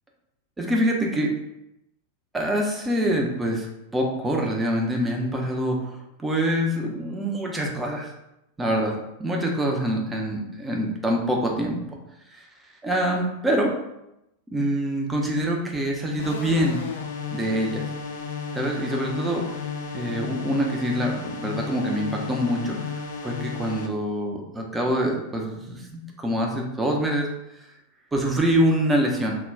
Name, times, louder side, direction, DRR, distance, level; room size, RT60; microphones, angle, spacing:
voice 1, 0.6-1.3 2.3-3.7 3.9-8.1 8.6-8.9 9.2-11.8 12.3-12.4 12.8-13.7 14.5-16.8 17.3-17.8 18.5-19.4 19.9-27.3 28.1-29.4, equal, 10° right, 0 dB, 0.5 m, -25 dB
sound 1, 16.2-23.9, left 5 dB, 60° left, 0.4 m, -33 dB
2.2 x 2.1 x 3.6 m, 0.87 s
figure-of-eight pair, 90°, 0 cm